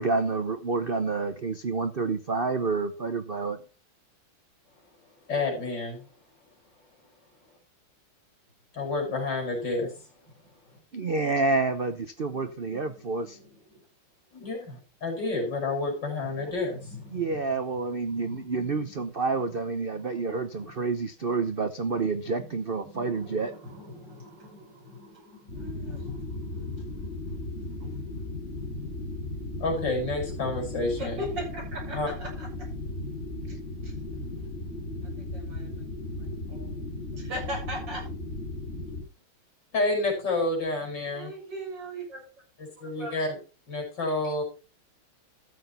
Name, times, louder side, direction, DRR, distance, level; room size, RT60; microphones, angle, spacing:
voice 1, 0.0-3.6 10.9-13.4 17.1-23.5, right 4 dB, 90° right, 9 dB, 0.4 m, -28 dB
voice 2, 5.3-6.0 8.7-9.9 14.3-16.9 29.6-31.2 32.0-32.1 39.7-41.3 42.6-43.4 43.7-44.4, left 2 dB, 50° left, 2 dB, 6.0 m, -29 dB
voice 3, 10.3-10.8 12.3-13.8 14.4-14.5 16.2-17.6 17.9-19.0 19.9-20.2 20.5-20.8 22.2-22.5 22.8-28.2 28.6-28.7 30.9-32.7 33.5-33.6 33.8-33.9 35.2-35.7 36.2-36.8 37.1-38.0 41.1-42.2 42.8-43.2, equal, 55° right, -2 dB, 8.0 m, -42 dB
sound 1, 25.5-39.0, left 2 dB, 35° left, 4.0 m, -36 dB
13.5 x 8.0 x 4.2 m, 0.34 s
omnidirectional pair, 2.4 m